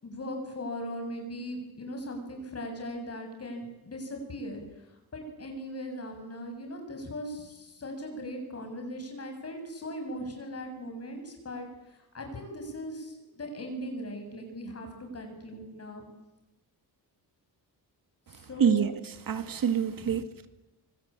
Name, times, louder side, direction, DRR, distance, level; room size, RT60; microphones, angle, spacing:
voice 1, 0.0-4.6 5.1-11.7 12.1-16.0 18.3-18.9 20.0-20.1, equal, 40° left, 7.3 m, -39 dB
voice 2, 18.6-18.9 19.3-20.5, right 7 dB, 60° right, 1.9 m, -26 dB
25.5 x 25.0 x 8.9 m
wide cardioid pair, 155°, 38 cm